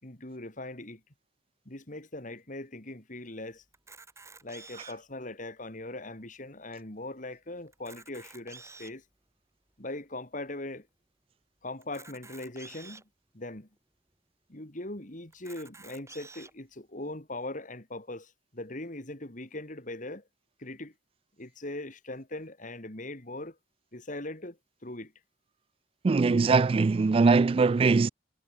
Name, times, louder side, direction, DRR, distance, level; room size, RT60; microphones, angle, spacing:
voice 1, 0.0-1.0 1.7-3.6 4.4-9.0 9.8-10.9 11.6-13.0 13.3-13.7 14.5-20.3 20.6-20.9 21.4-23.6 23.9-25.1, left 2 dB, 45° left, 3.6 m, -40 dB
Camera, 3.7-5.1 5.8-5.9 6.1-6.2 6.8-6.9 7.7-9.0 9.7-9.8 11.8-13.0 13.8-13.9 14.1-14.2 15.3-16.5, right 3 dB, 15° right, 5.1 m, -50 dB
voice 2, 26.0-28.1, right 4 dB, 30° right, 0.3 m, -22 dB
head